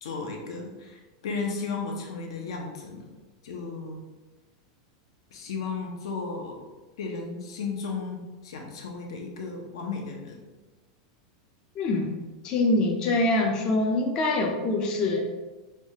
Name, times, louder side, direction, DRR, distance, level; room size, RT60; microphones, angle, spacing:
voice 1, 0.0-3.1 3.4-4.0 5.3-6.7 7.0-10.4, left 4 dB, 90° left, 1 dB, 0.6 m, -34 dB
voice 2, 11.8-12.1 12.4-15.2, left 2 dB, 25° left, 1 dB, 0.3 m, -24 dB
3.2 x 2.3 x 2.7 m, 1.2 s
supercardioid pair, 165°, 3 cm